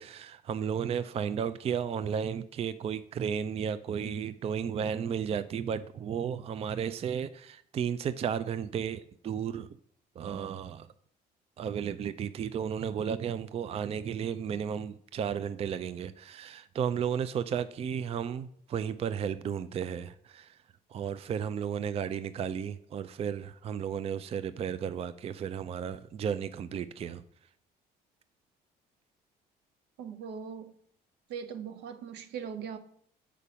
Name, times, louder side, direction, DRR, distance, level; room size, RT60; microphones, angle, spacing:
voice 1, 0.0-9.7 10.2-10.9 11.6-20.6 20.9-27.2, right 8 dB, 35° right, 0.4 m, -33 dB
voice 2, 30.0-30.7 31.3-32.8, right 7 dB, 85° right, 0.9 m, -40 dB
6.7 x 5.1 x 5.6 m
cardioid pair, 110°, 17 cm